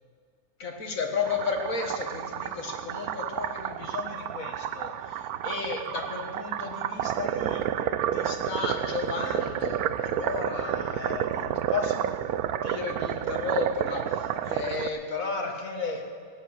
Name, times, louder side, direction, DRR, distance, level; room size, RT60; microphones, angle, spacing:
voice 1, 0.6-7.7 8.1-12.0 12.6-16.0, left 4 dB, 60° left, 2 dB, 2.0 m, -33 dB
sound 1, 1.3-14.9, right 10 dB, 75° right, 1.0 m, -30 dB
17.5 x 9.8 x 6.4 m, 2.3 s
omnidirectional pair, 1.6 m